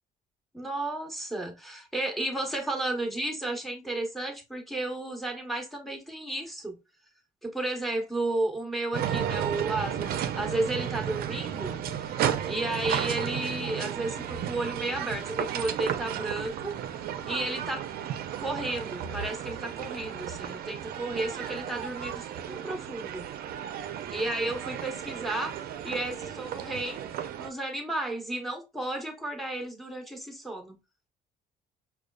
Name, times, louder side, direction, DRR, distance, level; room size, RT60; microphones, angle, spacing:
voice 1, 0.5-6.8 7.4-12.1 12.4-16.8 17.2-17.9 18.4-23.3 24.1-25.6 25.8-27.0 27.4-30.8, right 2 dB, ahead, 0.9 m, -33 dB
sound 1, 8.9-27.5, right 9 dB, 65° right, 0.4 m, -33 dB
4.9 x 2.3 x 2.2 m
cardioid pair, 110°, 17 cm